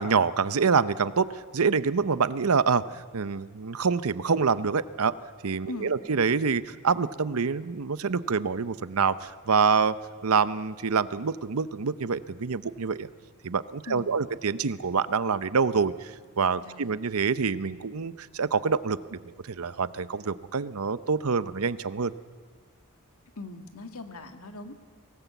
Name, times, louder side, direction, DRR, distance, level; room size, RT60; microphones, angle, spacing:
voice 1, 0.0-5.1 5.4-10.0 10.2-13.1 13.4-22.1, right 5 dB, 70° right, 15 dB, 0.7 m, -26 dB
voice 2, 13.9-14.2 16.6-17.0 23.4-24.7, left 2 dB, 70° left, 6 dB, 1.9 m, -40 dB
24.0 x 18.0 x 8.2 m, 1.6 s
head